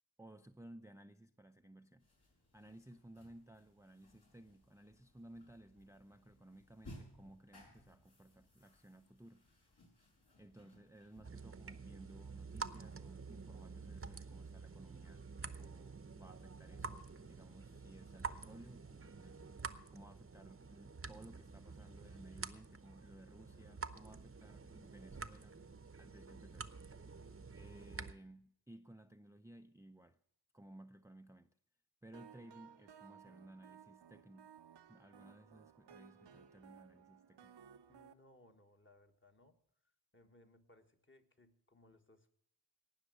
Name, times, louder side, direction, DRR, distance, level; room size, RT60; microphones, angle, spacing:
voice 1, 0.2-2.1 2.5-9.5 10.4-19.4 19.9-25.6 26.0-26.7 27.5-30.2 30.5-31.5 32.0-34.6 34.9-37.6, right 1 dB, 5° right, 0.5 m, -58 dB
sound 1, 2.0-11.2, equal, 65° left, 6.3 m, -61 dB
sound 2, 11.2-28.1, right 5 dB, 30° right, 0.8 m, -49 dB
sound 3, 32.1-38.1, right 8 dB, 80° right, 0.8 m, -60 dB
voice 2, 37.9-39.6 40.1-42.3, left 2 dB, 30° left, 1.6 m, -66 dB
18.0 x 6.5 x 7.8 m
wide cardioid pair, 75°, 42 cm